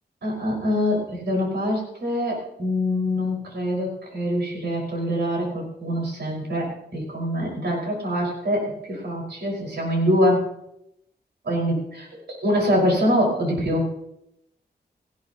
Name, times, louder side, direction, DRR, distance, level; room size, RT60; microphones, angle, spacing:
voice 1, 0.2-10.5 11.4-12.0 12.4-13.9, equal, 85° right, -2 dB, 5.4 m, -24 dB
18.0 x 15.5 x 3.0 m, 0.79 s
wide cardioid pair, 130°, 17 cm